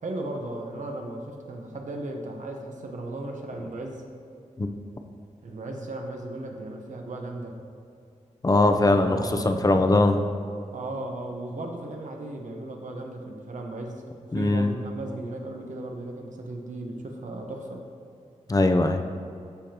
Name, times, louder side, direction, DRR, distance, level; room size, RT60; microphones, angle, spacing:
voice 1, 0.0-4.0 5.4-7.6 8.8-9.7 10.7-17.8, right 2 dB, 75° right, 2 dB, 1.1 m, -36 dB
voice 2, 8.4-10.3 14.3-14.7 18.5-19.0, left 2 dB, 30° left, 6 dB, 0.6 m, -21 dB
13.5 x 5.1 x 2.9 m, 2.5 s
cardioid pair, 65°, 13 cm